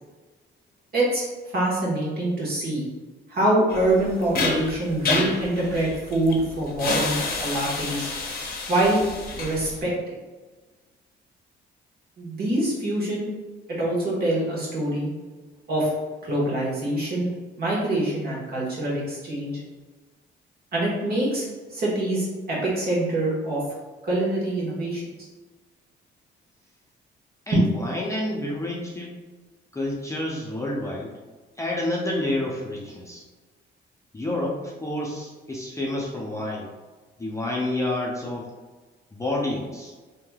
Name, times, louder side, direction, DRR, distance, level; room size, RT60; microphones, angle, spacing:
voice 1, 0.9-2.9 3.3-8.1 8.7-9.0 9.4-9.9 12.2-13.3 13.7-15.1 15.7-15.9 16.2-17.3 17.6-19.6 20.7-23.6 24.0-25.0 27.5-27.7, right 1 dB, 50° right, -5 dB, 1.3 m, -25 dB
sound 1, 3.7-9.8, left 3 dB, 50° left, 0.7 m, -29 dB
voice 2, 27.5-29.1 29.7-31.2 31.6-33.2 34.1-36.7 37.2-38.5 39.1-39.9, left 1 dB, 15° left, -3 dB, 0.5 m, -29 dB
3.1 x 2.8 x 2.3 m, 1.3 s
cardioid pair, 90°, 20 cm